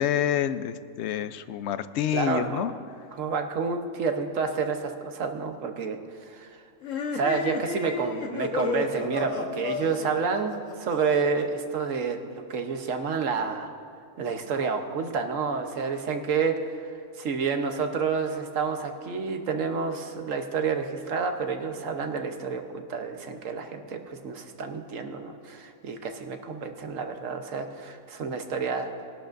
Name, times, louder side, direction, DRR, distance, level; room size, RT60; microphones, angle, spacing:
voice 1, 0.0-2.7, left 10 dB, 65° left, 13 dB, 0.8 m, -27 dB
voice 2, 2.1-2.8 3.1-6.6 7.1-13.7 14.2-28.9, right 5 dB, 90° right, 5 dB, 1.3 m, -29 dB
sound 1, 6.8-11.4, left 4 dB, 85° left, 1.5 m, -32 dB
22.5 x 11.5 x 2.6 m, 2.4 s
omnidirectional pair, 1.3 m